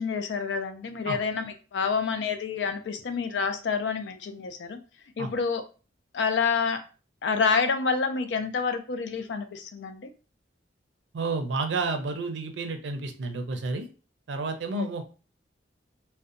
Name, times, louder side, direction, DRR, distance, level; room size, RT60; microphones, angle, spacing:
voice 1, 0.0-4.8 5.2-5.6 6.1-6.8 7.2-10.1 14.7-14.9, left 5 dB, 75° left, 8 dB, 0.4 m, -28 dB
voice 2, 11.1-13.9 14.3-15.0, right 3 dB, 80° right, 6 dB, 0.5 m, -30 dB
2.6 x 2.1 x 2.5 m, 0.35 s
head